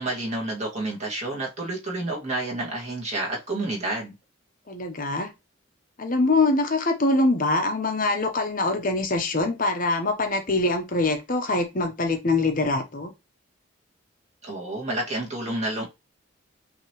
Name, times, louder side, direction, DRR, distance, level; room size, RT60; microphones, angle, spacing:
voice 1, 0.0-4.1 14.4-15.9, right 2 dB, 35° right, 1.9 m, -29 dB
voice 2, 4.7-5.3 6.0-13.1, left 2 dB, 40° left, 0.8 m, -24 dB
5.7 x 2.9 x 3.0 m
head